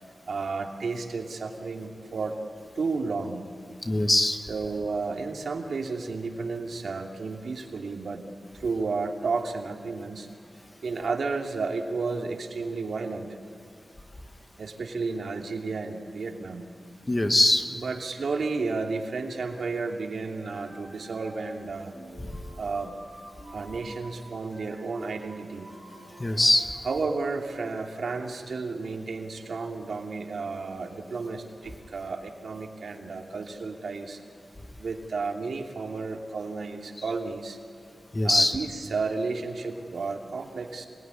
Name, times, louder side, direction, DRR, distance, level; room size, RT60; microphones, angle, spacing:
voice 1, 0.3-2.4 2.7-3.4 4.5-8.2 8.5-10.3 10.8-13.3 14.6-16.7 17.7-21.9 22.6-22.9 23.5-25.7 26.8-34.2 34.8-37.6 38.2-40.9, right 4 dB, 75° right, 2 dB, 2.8 m, -32 dB
voice 2, 3.8-4.4 17.0-17.7 26.2-26.7 38.1-38.6, left 1 dB, 20° left, 6 dB, 1.6 m, -21 dB
sound 1, 20.3-21.7 21.9-27.0, right 2 dB, 5° right, 6.0 m, -48 dB
27.0 x 20.0 x 9.9 m, 2.5 s
wide cardioid pair, 130°, 0 cm